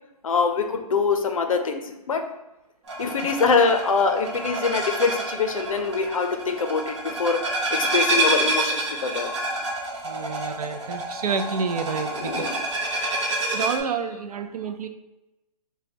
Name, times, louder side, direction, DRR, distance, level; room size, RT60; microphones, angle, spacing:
voice 1, 0.2-2.2 3.0-7.4 7.7-9.3 12.2-12.5, left 4 dB, 55° left, 6 dB, 0.5 m, -24 dB
sound 1, 2.9-13.8, right 2 dB, 45° right, 0.8 m, -28 dB
voice 2, 10.0-12.5 13.0-13.1 13.5-14.9, right 5 dB, 70° right, 8 dB, 0.4 m, -29 dB
5.2 x 2.2 x 2.8 m, 0.98 s
hypercardioid pair, 175°, 20 cm